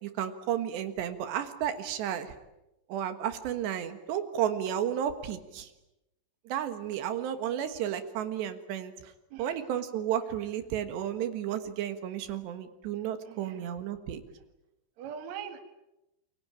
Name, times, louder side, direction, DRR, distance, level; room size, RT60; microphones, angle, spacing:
voice 1, 0.0-2.3 2.9-5.7 6.5-9.1 9.4-14.2, right 10 dB, 80° right, 10 dB, 3.7 m, -32 dB
voice 2, 9.3-9.7 13.2-13.7 15.0-15.6, right 8 dB, 50° right, 8 dB, 2.8 m, -42 dB
28.5 x 23.5 x 9.0 m, 0.92 s
omnidirectional pair, 4.9 m